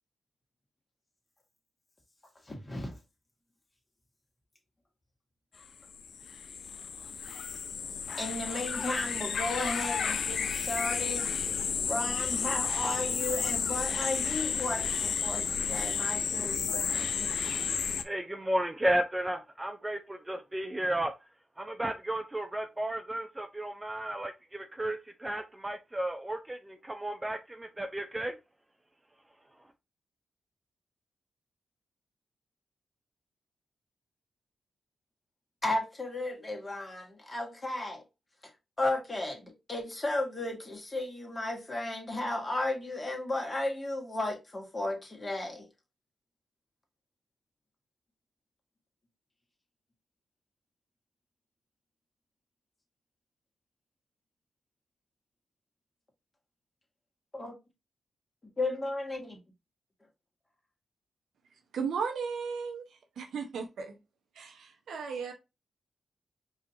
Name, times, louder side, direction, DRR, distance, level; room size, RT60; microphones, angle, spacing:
voice 1, 2.4-3.0 8.2-11.4 11.8-17.4 35.6-38.0 38.8-45.7 57.3-57.6 58.4-59.4, left 2 dB, 30° left, 1.7 m, -34 dB
sound 1, 5.6-5.7 5.9-18.0, left 6 dB, 70° left, 0.4 m, -32 dB
voice 2, 18.0-21.1 21.6-28.4, right 1 dB, 20° right, 0.6 m, -33 dB
voice 3, 61.7-62.9 63.2-64.0 64.3-65.3, right 5 dB, 80° right, 0.8 m, -35 dB
4.8 x 2.8 x 2.7 m
supercardioid pair, 40°, 0 cm